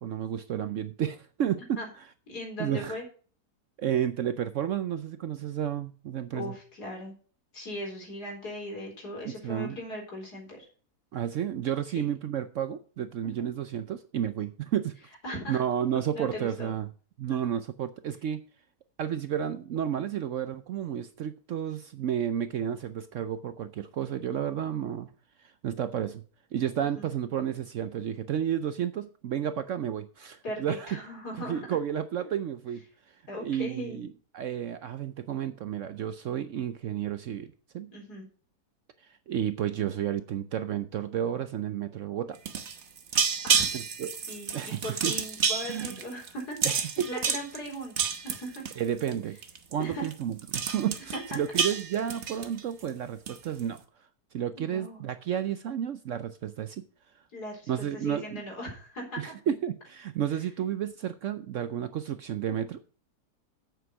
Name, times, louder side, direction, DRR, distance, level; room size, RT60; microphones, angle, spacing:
voice 1, 0.0-1.8 2.6-3.0 3.8-6.5 9.2-9.8 11.1-14.9 15.5-16.9 17.2-18.4 19.0-25.1 25.4-26.2 26.5-31.0 31.4-32.8 33.4-34.1 34.3-37.9 39.0-42.4 43.7-44.1 44.5-45.1 45.6-45.9 46.6-47.4 48.8-49.4 49.7-53.8 54.3-56.8 57.7-58.4 59.2-62.8, right 9 dB, 65° right, 11 dB, 0.8 m, -31 dB
voice 2, 2.3-3.0 6.3-7.1 7.5-10.7 12.0-12.1 13.2-13.5 15.2-15.6 16.1-16.7 26.9-27.1 30.4-31.7 33.3-34.1 37.9-38.3 43.4-43.8 44.3-48.6 49.8-50.1 51.1-51.2 54.5-55.0 57.3-59.4, equal, 75° left, -1 dB, 4.7 m, -38 dB
sound 1, 42.3-49.1 49.4-49.7 50.0-50.1 50.4-52.9 53.3-53.6, right 6 dB, 50° right, 1.2 m, -29 dB
8.2 x 7.8 x 5.9 m, 0.41 s
omnidirectional pair, 1.7 m